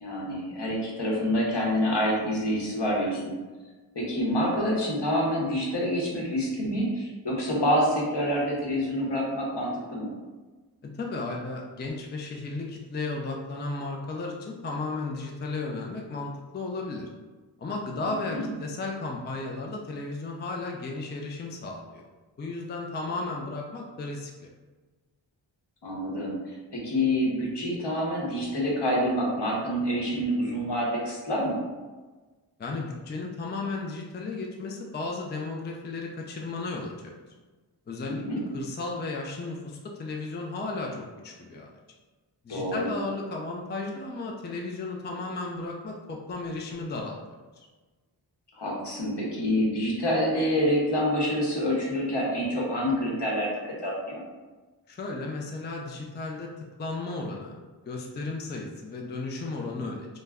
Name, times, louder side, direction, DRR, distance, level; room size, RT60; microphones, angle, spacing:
voice 1, 0.0-3.2 3.9-10.1 18.0-18.5 25.8-26.3 26.7-31.6 38.0-38.4 42.5-42.9 48.6-54.2, equal, 65° left, -4 dB, 0.9 m, -27 dB
voice 2, 10.8-17.1 17.6-22.0 22.4-24.5 32.6-37.1 37.9-38.3 38.5-41.7 42.4-47.2 47.6-47.7 54.9-56.5 56.8-57.6 57.9-60.1, left 3 dB, 25° left, 0 dB, 0.3 m, -34 dB
2.2 x 2.0 x 3.4 m, 1.3 s
wide cardioid pair, 45°, 44 cm